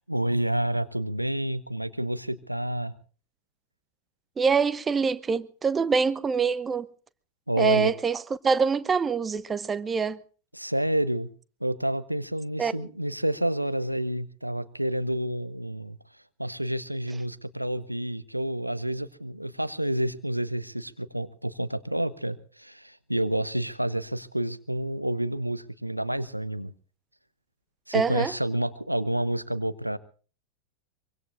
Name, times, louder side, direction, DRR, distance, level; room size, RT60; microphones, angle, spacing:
voice 1, 0.1-2.9 7.5-7.9 10.5-11.3 11.6-16.0 16.4-26.7 27.9-30.0, right 1 dB, 90° right, 0.9 m, -29 dB
voice 2, 4.4-6.9 7.6-10.2 12.6-12.9 27.9-28.3, right 5 dB, 15° right, 0.8 m, -25 dB
24.0 x 24.0 x 2.5 m
figure-of-eight pair, 90°, 0 cm